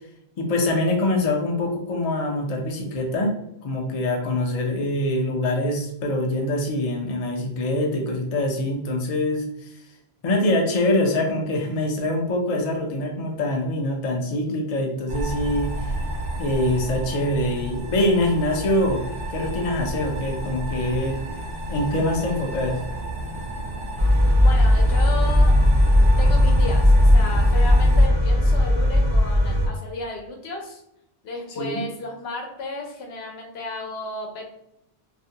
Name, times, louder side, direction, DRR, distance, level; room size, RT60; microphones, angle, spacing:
voice 1, 0.4-3.4 3.6-9.7 10.2-16.0 16.4-21.2 21.7-22.8 31.5-31.8, left 1 dB, 50° left, 0 dB, 0.5 m, -24 dB
sound 1, 15.1-28.1, right 1 dB, 85° right, 0.9 m, -31 dB
sound 2, 24.0-29.7, left 1 dB, 35° right, 0.6 m, -17 dB
voice 2, 24.4-25.6 26.0-30.8 31.2-34.5, left 2 dB, 75° left, 1 dB, 0.8 m, -33 dB
2.4 x 2.1 x 2.7 m, 0.79 s
omnidirectional pair, 1.1 m